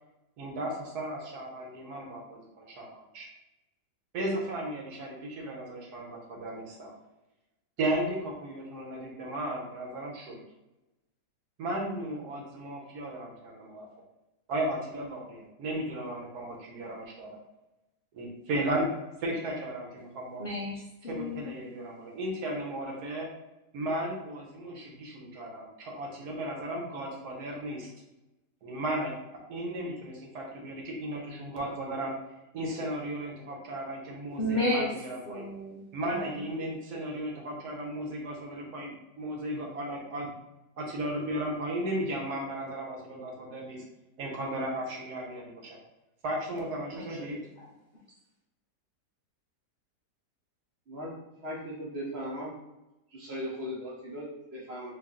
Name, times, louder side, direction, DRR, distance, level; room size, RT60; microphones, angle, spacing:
voice 1, 0.4-2.9 3.1-3.3 4.1-6.9 7.8-10.4 11.6-13.9 14.5-17.4 18.1-18.9 19.2-20.4 21.0-23.3 23.7-27.9 28.6-29.1 29.5-32.1 32.5-35.5 35.9-40.3 40.8-43.8 44.2-45.8 46.2-47.4, right 1 dB, 70° right, -1 dB, 1.3 m, -35 dB
voice 2, 20.4-21.5 34.4-34.9 35.3-36.2 46.9-47.3, left 1 dB, 70° left, -4 dB, 0.5 m, -32 dB
voice 3, 51.4-52.5 53.1-54.9, equal, 50° right, -3 dB, 0.8 m, -38 dB
3.5 x 2.4 x 3.6 m, 0.98 s
omnidirectional pair, 1.8 m